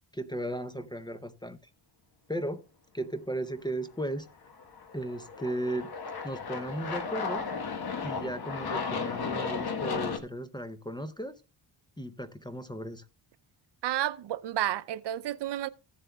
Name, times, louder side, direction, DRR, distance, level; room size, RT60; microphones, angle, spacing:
voice 1, 0.1-1.6 2.3-2.7 2.9-4.3 4.9-5.9 6.2-7.5 8.0-11.3 12.0-13.1, right 1 dB, 10° left, 0.5 m, -35 dB
Aircraft, 4.5-10.2, left 5 dB, 50° left, 1.3 m, -34 dB
voice 2, 13.8-15.7, right 12 dB, 60° right, 0.6 m, -31 dB
15.5 x 7.5 x 2.3 m
cardioid pair, 115°, 47 cm